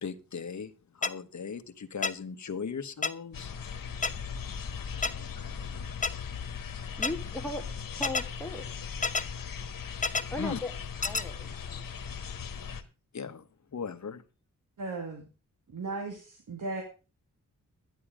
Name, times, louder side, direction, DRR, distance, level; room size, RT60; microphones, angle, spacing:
voice 1, 0.0-3.5 10.4-10.6 13.1-13.5 13.7-14.2, left 6 dB, 60° left, 1.2 m, -38 dB
sound 1, 1.0-1.1 2.0-2.1 3.0-3.1 4.0-4.1 5.0-5.1 6.0-6.1 7.0-7.1 8.0-8.2 9.0-9.2 10.0-10.2 11.0-11.2, left 4 dB, 25° left, 0.7 m, -27 dB
sound 2, 3.3-12.8, left 6 dB, 90° left, 1.3 m, -39 dB
voice 2, 7.0-7.6 7.9-8.6 10.3-10.7 11.0-11.9, left 1 dB, 5° left, 1.5 m, -37 dB
voice 3, 14.8-15.3 15.7-16.8, right 3 dB, 70° right, 2.4 m, -36 dB
11.0 x 10.0 x 5.0 m
wide cardioid pair, 85°, 33 cm